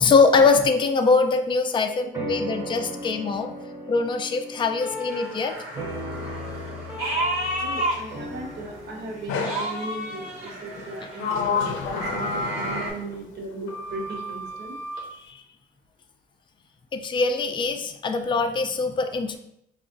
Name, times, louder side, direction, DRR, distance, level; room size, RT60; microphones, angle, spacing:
voice 1, 0.0-3.5 3.9-5.5 11.0-11.1 15.3-15.4 16.9-19.4, left 4 dB, 25° left, 6 dB, 0.4 m, -22 dB
sound 1, 2.1-10.9, equal, 15° right, 0.8 m, -37 dB
sound 2, 4.9-8.8 9.2-12.9, right 1 dB, 90° right, 1.1 m, -31 dB
voice 2, 7.6-14.8, right 2 dB, 55° right, 1 dB, 0.9 m, -36 dB
Sliding door, 9.3-9.7 10.7-13.2 13.7-15.1, left 5 dB, 85° left, 0.5 m, -30 dB
4.8 x 2.4 x 2.5 m, 0.78 s
cardioid pair, 90°, 20 cm